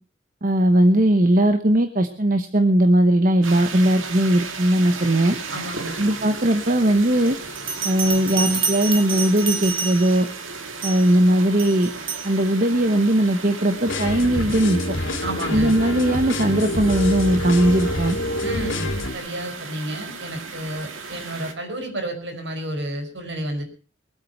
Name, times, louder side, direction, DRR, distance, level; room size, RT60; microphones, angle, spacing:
voice 1, 0.4-5.4 6.0-7.4 7.8-10.3 10.8-11.9 12.2-14.8 15.5-18.2, right 1 dB, 40° right, 8 dB, 1.1 m, -19 dB
sound 1, 3.4-21.5, right 4 dB, 85° right, 2.2 m, -35 dB
voice 2, 5.5-6.0 15.2-15.8 18.4-23.6, right 1 dB, 65° right, 5 dB, 5.4 m, -31 dB
Bell, 7.6-10.3 10.8-11.1 11.6-12.3, right 5 dB, 25° right, 1.4 m, -28 dB
sound 2, 13.9-19.1, left 1 dB, 75° left, 2.7 m, -26 dB
23.0 x 8.7 x 5.8 m, 0.40 s
head